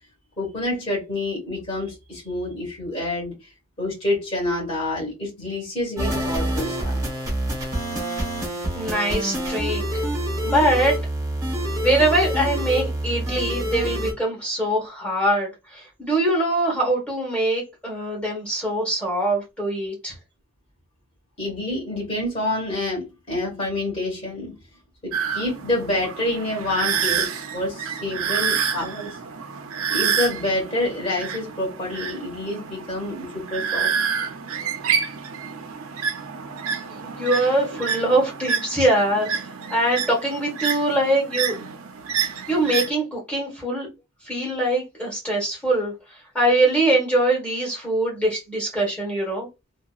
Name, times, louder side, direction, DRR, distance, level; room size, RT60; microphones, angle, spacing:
voice 1, 0.4-3.3 3.8-7.0 21.4-24.5 25.0-29.2 29.9-33.9, left 1 dB, 25° left, 1.3 m, -27 dB
sound 1, 6.0-14.1, right 1 dB, 15° right, 0.8 m, -26 dB
voice 2, 8.7-10.0 10.4-10.9 11.8-20.1 37.0-41.6 42.2-43.9 44.2-45.9 46.3-49.5, right 1 dB, 5° left, 1.1 m, -23 dB
sound 2, 25.1-42.9, right 7 dB, 85° right, 0.5 m, -28 dB
2.7 x 2.2 x 2.3 m
head